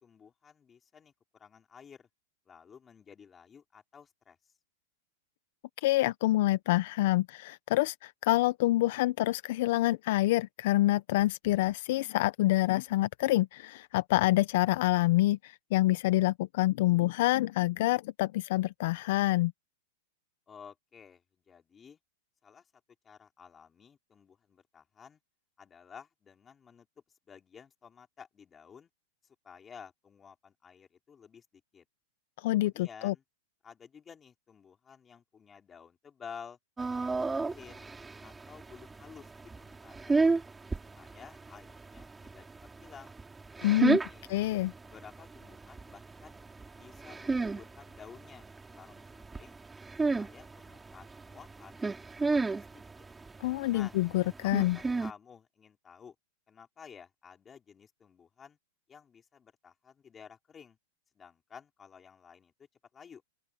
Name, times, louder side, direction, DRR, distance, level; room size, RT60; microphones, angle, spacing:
voice 1, 0.0-2.1 2.5-4.4 20.5-22.0 22.4-22.7 23.0-25.2 25.6-26.9 27.3-28.9 29.4-31.8 32.5-33.2 33.6-36.6 36.9-37.9 38.2-40.4 40.9-42.4 42.8-43.2 43.8-44.3 44.9-46.4 46.8-49.6 50.2-51.8 52.2-53.1 53.7-54.0 54.7-56.1 56.5-58.6 58.9-60.8 61.1-62.5 62.9-63.2, left 7 dB, 15° left, 4.6 m, -53 dB
voice 2, 5.8-19.5 32.4-33.1 43.6-44.0 44.3-44.7 53.4-54.8, left 16 dB, 55° left, 0.6 m, -27 dB
sound 1, 36.8-55.1, right 3 dB, 10° right, 3.2 m, -34 dB
open air
supercardioid pair, 150°, 0 cm